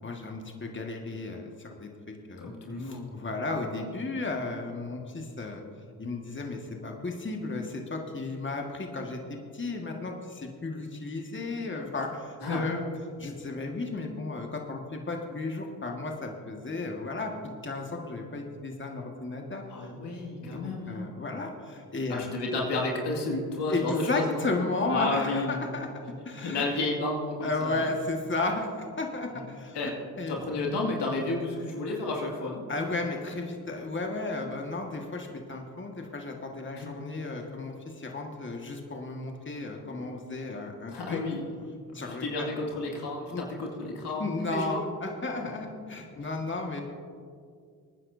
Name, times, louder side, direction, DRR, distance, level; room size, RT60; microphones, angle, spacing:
voice 1, 0.0-2.5 2.8-5.6 6.0-12.8 13.2-17.3 17.6-19.9 20.4-22.3 23.7-25.9 26.2-26.7 27.4-30.4 32.7-41.2 41.9-42.5 43.3-43.5 44.2-46.8, left 2 dB, 30° left, 1 dB, 1.7 m, -34 dB
voice 2, 2.4-3.2 12.4-12.6 19.7-21.0 22.1-24.5 24.9-25.6 26.2-27.8 29.3-29.4 29.7-29.9 30.3-32.6 36.7-36.9 40.9-41.4 41.9-44.6 46.2-46.3, left 2 dB, 75° left, -1 dB, 2.3 m, -32 dB
23.0 x 9.7 x 2.7 m, 2.2 s
supercardioid pair, 45°, 42 cm